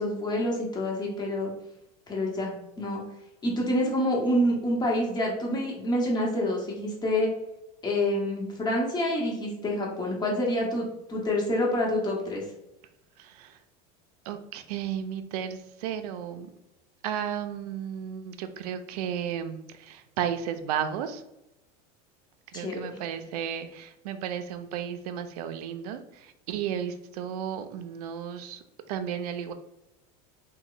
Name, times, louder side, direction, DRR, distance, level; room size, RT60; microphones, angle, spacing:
voice 1, 0.0-1.5 2.1-3.0 3.4-7.3 7.8-12.4 22.5-23.0, left 1 dB, 20° left, -1 dB, 0.9 m, -27 dB
voice 2, 13.2-13.6 14.3-16.5 17.0-21.2 22.5-28.6 28.9-29.5, right 9 dB, 90° right, 9 dB, 0.4 m, -34 dB
3.0 x 2.1 x 3.8 m, 0.88 s
supercardioid pair, 130°, 19 cm